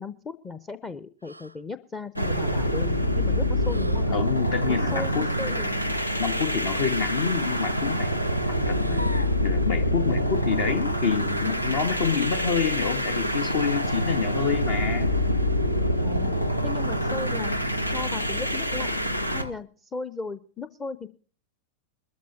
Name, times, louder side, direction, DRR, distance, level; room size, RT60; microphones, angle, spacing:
voice 1, 0.0-4.2 4.7-5.8 16.0-16.3 16.6-17.5 17.9-18.9 19.3-21.1, left 4 dB, 20° left, 13 dB, 0.7 m, -36 dB
sound 1, 1.2-1.6 3.6-4.2 6.2-6.8 8.5-9.5 11.1-11.3 13.4-13.9 15.3-15.8, equal, 90° right, 0.5 m, -42 dB
sound 2, 2.1-19.5, equal, 90° left, 0.9 m, -26 dB
voice 2, 4.1-5.3 6.2-8.1 8.5-15.1, left 6 dB, 55° left, 8 dB, 1.0 m, -27 dB
21.5 x 14.0 x 2.7 m, 0.41 s
figure-of-eight pair, 90°, 0 cm